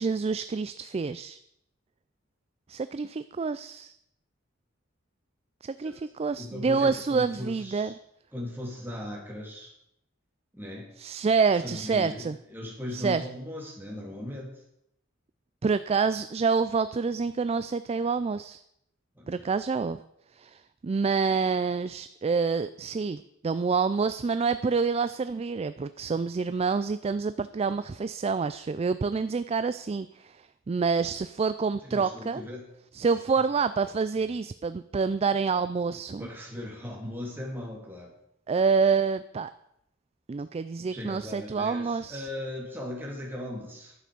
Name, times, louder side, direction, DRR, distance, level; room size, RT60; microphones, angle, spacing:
voice 1, 0.0-1.4 2.7-4.0 5.6-8.0 11.0-12.4 12.9-13.2 15.6-18.6 19.3-20.0 20.3-32.4 32.9-36.3 38.5-39.5 40.3-42.3, right 5 dB, 30° right, 13 dB, 0.4 m, -27 dB
voice 2, 6.4-7.9 8.3-9.7 10.5-10.9 11.6-14.5 19.1-19.5 31.8-32.6 36.2-38.1 40.9-43.9, left 1 dB, 10° right, -2 dB, 3.1 m, -38 dB
11.0 x 7.6 x 6.9 m, 0.75 s
head